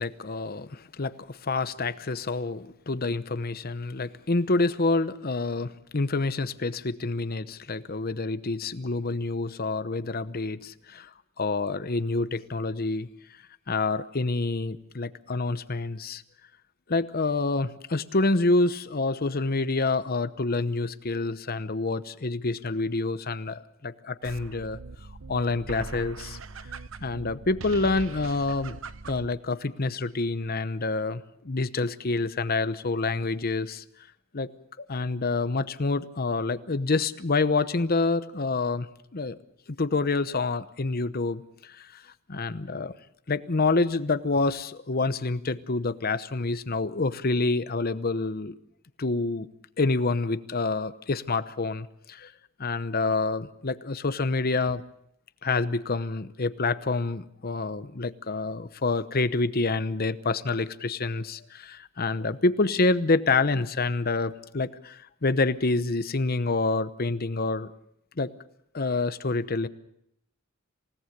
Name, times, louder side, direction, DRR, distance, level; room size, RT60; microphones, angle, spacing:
voice 1, 0.0-11.1 11.4-13.1 13.7-16.2 16.9-24.8 25.3-26.4 27.0-28.8 29.1-33.8 34.3-34.5 34.9-38.9 39.1-39.4 39.8-41.4 41.8-41.9 42.3-42.9 43.3-48.5 49.0-49.5 49.8-52.3 52.6-54.8 55.4-67.7 68.2-68.3 68.7-69.7, left 3 dB, 50° left, 13 dB, 0.9 m, -27 dB
sound 1, 24.2-29.4, right 4 dB, 75° right, 0.8 m, -41 dB
27.5 x 17.5 x 6.7 m, 0.74 s
head